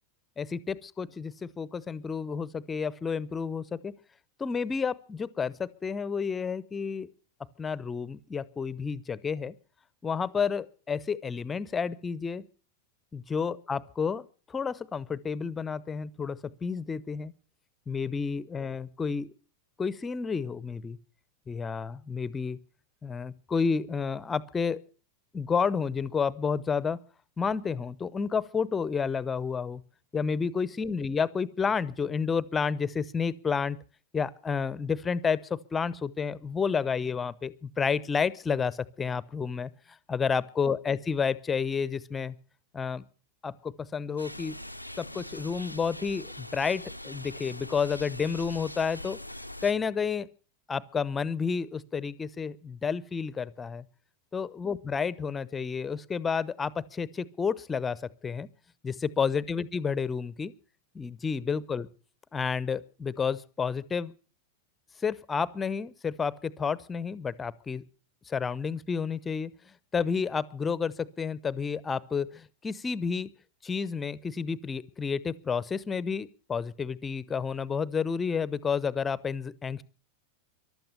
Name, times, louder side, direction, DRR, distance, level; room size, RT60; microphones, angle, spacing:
voice 1, 0.4-3.9 4.4-7.1 7.6-9.5 10.0-12.4 13.1-17.3 17.9-19.3 19.8-21.0 21.5-22.6 23.0-24.8 25.3-27.0 27.4-29.8 30.1-33.8 34.1-39.7 40.1-42.4 42.7-43.0 43.4-44.6 45.0-49.2 49.6-50.3 50.7-53.8 54.3-58.5 58.8-60.5 60.9-61.9 62.3-64.1 65.0-67.8 68.3-69.5 69.9-73.3 73.6-79.8, left 6 dB, 15° left, 19 dB, 0.8 m, -30 dB
sound 1, 44.2-49.7, left 1 dB, 90° left, 0.7 m, -42 dB
15.0 x 12.0 x 7.0 m, 0.39 s
figure-of-eight pair, 90°, 0 cm